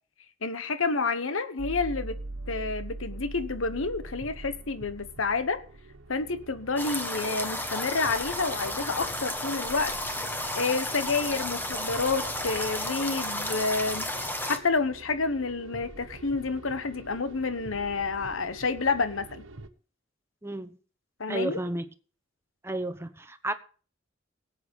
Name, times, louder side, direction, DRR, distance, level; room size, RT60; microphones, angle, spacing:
voice 1, 0.4-2.2 2.5-5.6 6.1-10.0 10.5-14.1 14.4-19.4 21.2-21.6, left 4 dB, 85° left, 1.2 m, -29 dB
sound 1, 1.6-19.7, right 2 dB, 75° right, 1.2 m, -44 dB
sound 2, 6.8-14.6, left 1 dB, 10° left, 1.5 m, -32 dB
voice 2, 20.4-20.8 21.3-21.9 22.6-23.5, right 1 dB, 15° right, 1.0 m, -32 dB
18.0 x 8.2 x 5.3 m
head